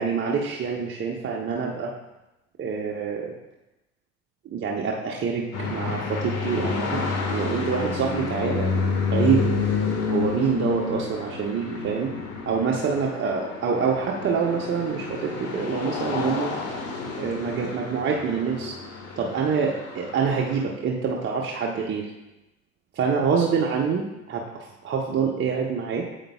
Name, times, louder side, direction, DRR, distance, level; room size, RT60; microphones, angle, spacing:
voice 1, 0.0-1.9 2.6-3.3 4.4-7.0 7.3-8.8 9.1-9.4 10.1-12.1 12.5-16.5 17.1-18.7 19.2-22.1 22.9-26.1, right 6 dB, 30° right, -1 dB, 0.9 m, -26 dB
sound 1, 5.5-20.6, left 4 dB, 35° left, 1.7 m, -29 dB
8.9 x 8.0 x 2.3 m, 0.96 s
figure-of-eight pair, 75°, 41 cm